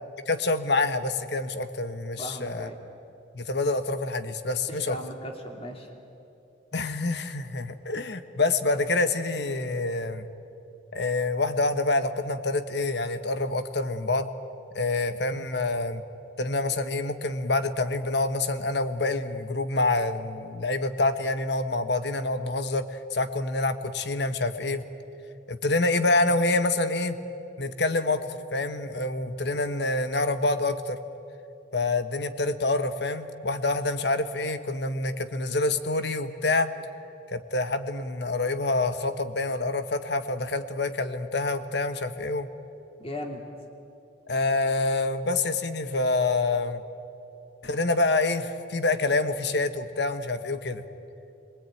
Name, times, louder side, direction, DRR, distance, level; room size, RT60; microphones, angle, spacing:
voice 1, 0.3-2.7 3.3-4.9 6.7-10.3 10.9-14.3 14.7-16.0 16.4-24.8 25.5-27.2 27.6-28.2 28.5-31.0 31.7-36.7 37.3-42.5 44.3-46.8 47.6-50.8, left 2 dB, 60° left, 10 dB, 1.2 m, -27 dB
voice 2, 2.2-2.8 4.7-5.9 43.0-43.4, left 1 dB, 30° left, 2 dB, 2.9 m, -37 dB
26.0 x 23.0 x 9.2 m, 2.8 s
head